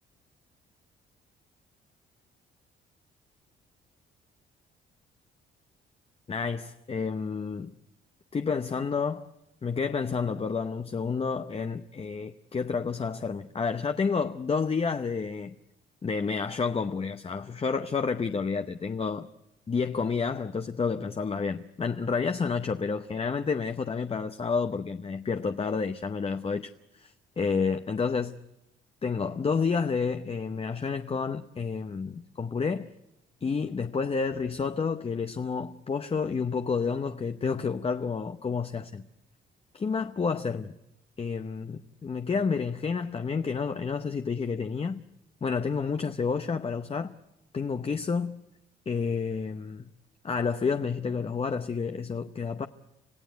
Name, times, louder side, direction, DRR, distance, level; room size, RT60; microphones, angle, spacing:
voice 1, 6.3-7.7 8.3-9.3 9.6-15.5 16.0-19.3 19.7-28.4 29.0-32.9 33.4-39.0 39.7-40.8 41.2-45.0 45.4-47.1 47.5-48.4 48.9-49.9 50.2-52.7, left 5 dB, 30° left, 0.8 m, -30 dB
27.0 x 16.0 x 9.3 m
cardioid pair, 90°, 20 cm